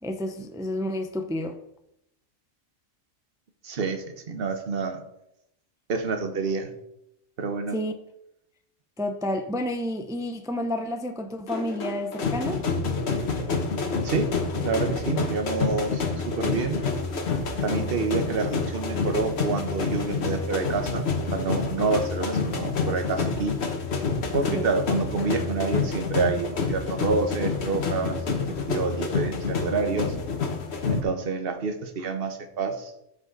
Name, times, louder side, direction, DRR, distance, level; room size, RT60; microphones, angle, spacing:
voice 1, 0.0-1.6 7.7-7.9 9.0-12.6 24.5-24.7, left 1 dB, 5° right, 0.4 m, -30 dB
voice 2, 3.6-5.0 5.9-6.7 7.4-7.8 14.0-14.3 14.6-16.8 17.6-23.5 24.3-28.2 28.7-30.1 30.9-32.9, right 4 dB, 50° right, 1.2 m, -28 dB
sound 1, 11.5-31.0, left 4 dB, 55° left, 1.4 m, -28 dB
13.0 x 5.5 x 3.9 m
omnidirectional pair, 1.3 m